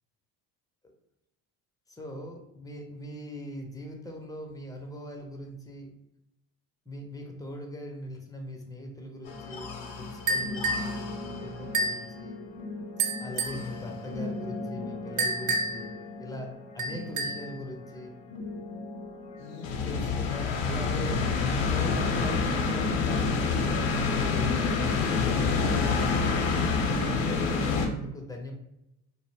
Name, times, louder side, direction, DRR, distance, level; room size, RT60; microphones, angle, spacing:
voice 1, 1.9-5.9 6.9-12.4 13.2-15.9 16.2-18.1 19.6-26.1 26.9-28.5, equal, 10° left, 1 dB, 0.4 m, -40 dB
sound 1, 9.3-27.9, left 4 dB, 65° left, 0.6 m, -30 dB
sound 2, 10.3-10.9 11.7-12.1 13.0-13.6 15.2-15.9 16.8-17.5, right 2 dB, 40° right, 0.6 m, -29 dB
2.1 x 2.1 x 3.3 m, 0.86 s
hypercardioid pair, 65°, 49 cm